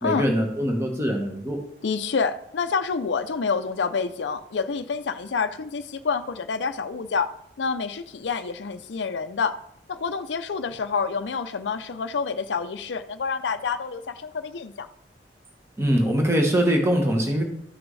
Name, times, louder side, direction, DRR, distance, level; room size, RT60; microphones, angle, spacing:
voice 1, 0.0-1.6 15.8-17.4, equal, 15° right, 1 dB, 1.3 m, -22 dB
voice 2, 1.8-7.3 7.6-9.6 9.9-14.9, left 5 dB, 75° left, 9 dB, 0.5 m, -28 dB
12.5 x 6.1 x 3.2 m, 0.72 s
head